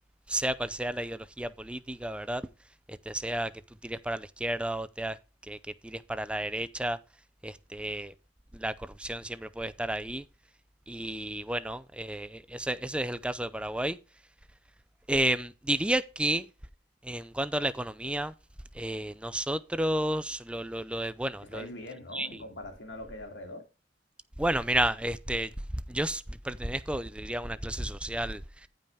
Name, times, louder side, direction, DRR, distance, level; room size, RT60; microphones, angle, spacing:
voice 1, 0.3-2.4 2.9-3.5 3.8-5.2 5.5-5.6 5.8-7.0 7.4-8.1 8.5-10.2 10.9-14.0 15.1-16.5 17.0-18.3 18.7-21.7 22.1-22.3 24.4-25.5 25.9-28.4, right 1 dB, 5° right, 0.5 m, -31 dB
voice 2, 21.5-23.7, left 1 dB, 90° left, 2.6 m, -42 dB
14.5 x 5.5 x 3.4 m
head